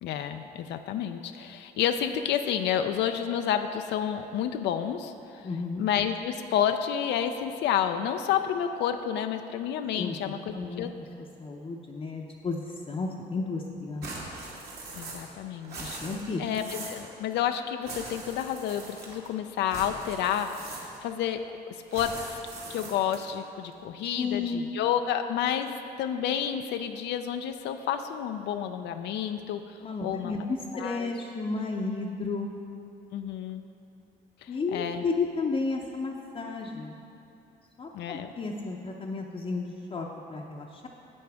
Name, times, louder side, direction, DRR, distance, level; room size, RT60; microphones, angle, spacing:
voice 1, 0.0-5.5 5.8-10.9 14.9-16.0 16.4-21.4 21.9-22.4 22.7-29.6 30.0-30.4 30.7-31.1 33.1-33.6 34.4-35.0 37.9-38.3, left 9 dB, 85° left, 7 dB, 0.4 m, -30 dB
voice 2, 5.4-5.8 10.0-10.9 11.4-14.1 15.8-16.4 24.1-24.6 29.8-32.5 34.5-37.0 37.8-40.9, left 4 dB, 35° left, -1 dB, 0.6 m, -33 dB
sound 1, 14.0-15.4 15.6-17.1 17.8-19.3 19.7-21.1 21.9-23.3, right 2 dB, 65° right, 2.0 m, -41 dB
10.5 x 7.6 x 3.5 m, 2.8 s
cardioid pair, 95°, 18 cm